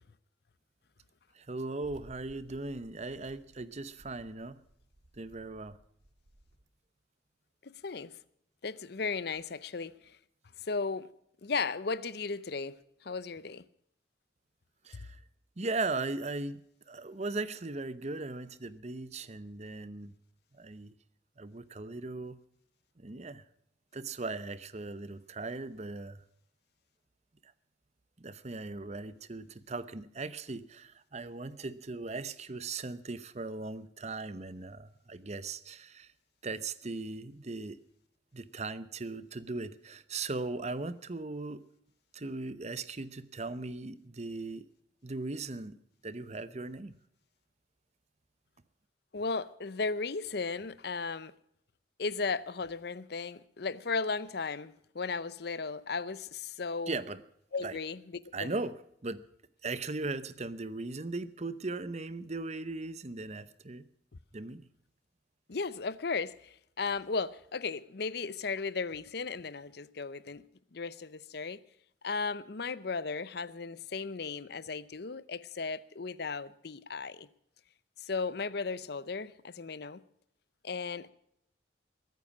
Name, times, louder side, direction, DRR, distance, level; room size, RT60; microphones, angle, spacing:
voice 1, 1.3-4.6 5.1-5.8 14.8-15.2 15.6-16.6 16.9-20.1 20.5-20.9 21.4-22.4 23.0-23.4 23.9-26.2 27.4-27.5 28.2-36.1 36.4-37.8 38.3-41.6 42.1-44.6 45.0-46.9 56.9-57.2 57.6-57.8 58.3-58.8 59.0-59.2 59.6-63.8 64.3-64.7, right 3 dB, 35° right, 0.8 m, -38 dB
sound 1, 1.8-6.7, right 1 dB, 80° right, 1.9 m, -59 dB
voice 2, 7.6-8.1 8.6-10.2 10.6-11.1 11.4-12.8 13.0-13.6 49.1-51.3 52.0-56.9 57.5-58.5 65.5-70.4 70.7-71.6 72.0-77.3 78.0-80.0 80.6-81.1, left 4 dB, 60° left, 0.7 m, -35 dB
21.5 x 9.3 x 6.0 m
head